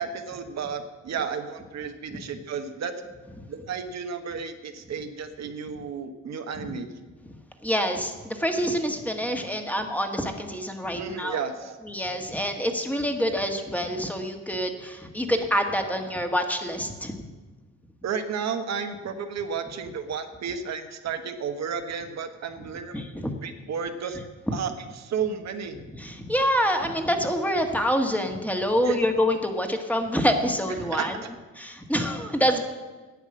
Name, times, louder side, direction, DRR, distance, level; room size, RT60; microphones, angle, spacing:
voice 1, 0.0-2.9 3.5-6.9 11.0-11.7 18.0-23.0 23.4-24.2 24.5-24.7 25.0-25.8 28.8-29.0 30.8-31.3, right 6 dB, 60° right, 7 dB, 1.1 m, -32 dB
voice 2, 7.6-11.4 11.8-17.3 22.9-23.3 24.5-24.6 26.0-31.2 31.6-32.6, equal, 5° left, 4 dB, 1.5 m, -26 dB
10.5 x 8.1 x 7.5 m, 1.3 s
cardioid pair, 90°, 30 cm